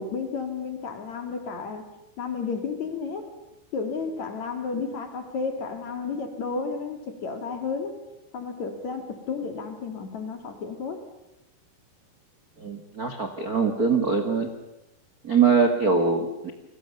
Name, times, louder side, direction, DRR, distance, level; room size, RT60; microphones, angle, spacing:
voice 1, 0.0-1.8 2.2-3.3 3.7-7.9 8.3-11.0, left 5 dB, 45° left, 6 dB, 3.2 m, -32 dB
voice 2, 12.6-14.5 15.2-16.5, right 5 dB, 75° right, 6 dB, 0.8 m, -23 dB
30.0 x 23.0 x 7.0 m, 0.93 s
omnidirectional pair, 5.0 m